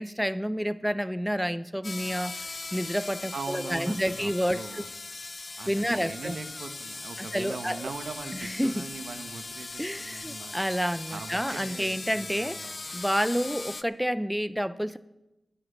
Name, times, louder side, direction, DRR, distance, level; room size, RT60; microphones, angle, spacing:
voice 1, 0.0-4.8 5.7-6.4 7.2-7.9 8.3-8.9 9.8-12.6 12.9-15.0, equal, ahead, 13 dB, 0.6 m, -29 dB
sound 1, 1.8-13.8, left 3 dB, 50° left, 0.5 m, -39 dB
voice 2, 3.3-4.9 5.6-10.6 11.1-12.8, right 4 dB, 85° right, 8 dB, 1.1 m, -41 dB
10.5 x 7.6 x 9.6 m, 0.95 s
cardioid pair, 50°, 0 cm